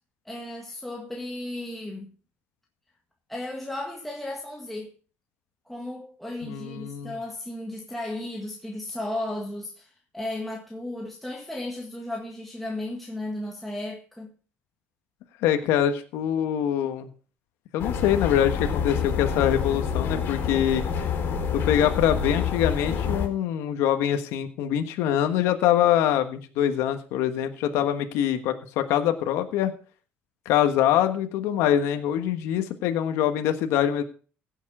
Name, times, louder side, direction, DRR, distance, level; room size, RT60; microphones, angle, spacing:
voice 1, 0.3-2.1 3.3-4.9 5.7-14.3, left 1 dB, 5° left, 1.8 m, -35 dB
voice 2, 6.4-7.1 15.4-17.1 17.7-20.8 21.5-29.7 30.4-34.0, left 10 dB, 85° left, 1.4 m, -24 dB
sound 1, 17.8-23.3, left 7 dB, 55° left, 4.4 m, -27 dB
16.0 x 7.2 x 4.9 m
cardioid pair, 125°, 5 cm